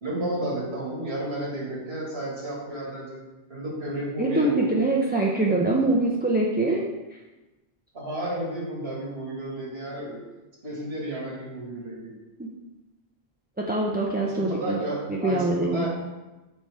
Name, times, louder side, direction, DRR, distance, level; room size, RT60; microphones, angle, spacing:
voice 1, 0.0-3.2 3.5-4.6 7.9-10.2 10.6-12.1 14.3-15.9, right 1 dB, 80° right, -4 dB, 2.1 m, -32 dB
voice 2, 4.2-6.8 7.1-7.2 12.4-12.5 13.6-14.8 15.1-15.9, right 2 dB, 15° right, -3 dB, 0.4 m, -24 dB
6.9 x 4.6 x 3.5 m, 1.1 s
omnidirectional pair, 1.0 m